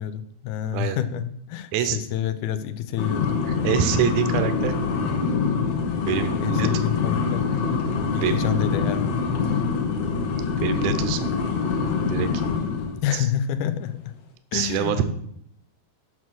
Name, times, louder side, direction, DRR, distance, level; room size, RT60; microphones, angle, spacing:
voice 1, 0.0-3.3 6.4-7.6 8.1-9.1 13.0-14.1 14.5-15.0, left 10 dB, 90° left, 12 dB, 2.2 m, -28 dB
sound 1, 3.0-13.0, left 5 dB, 65° left, 2.0 m, -25 dB
voice 2, 3.5-4.8 6.1-6.7 8.2-8.5 10.6-11.3 12.1-12.3 13.1-13.3 14.5-15.0, right 9 dB, 75° right, 9 dB, 1.9 m, -25 dB
7.4 x 6.2 x 6.2 m, 0.72 s
omnidirectional pair, 3.5 m